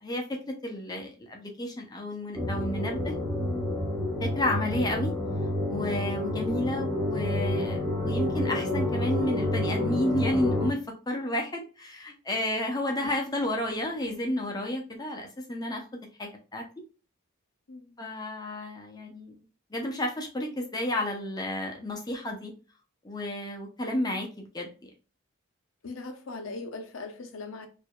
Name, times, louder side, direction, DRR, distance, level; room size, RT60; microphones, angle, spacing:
voice 1, 0.0-3.1 4.2-5.1 5.7-10.8 11.1-15.8 16.2-16.6 18.0-19.4 19.7-22.5 23.0-24.7, left 1 dB, 20° left, 0.6 m, -31 dB
sound 1, 2.3-10.7, left 1 dB, 5° left, 1.1 m, -29 dB
voice 2, 25.8-27.7, left 3 dB, 75° left, 0.7 m, -39 dB
4.6 x 2.6 x 2.2 m
head